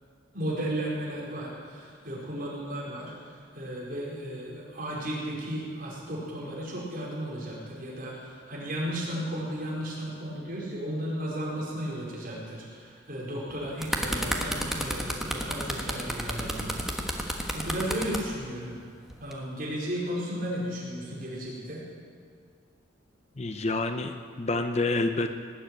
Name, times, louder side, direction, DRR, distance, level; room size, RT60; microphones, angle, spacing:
voice 1, 0.3-16.9 17.1-18.8 19.2-21.8, equal, 50° right, -6 dB, 4.8 m, -34 dB
sound 1, 13.5-18.2 19.1-19.3, equal, ahead, 1.3 m, -31 dB
voice 2, 23.4-25.4, left 2 dB, 35° left, 7 dB, 0.7 m, -28 dB
19.0 x 7.9 x 9.1 m, 2.1 s
head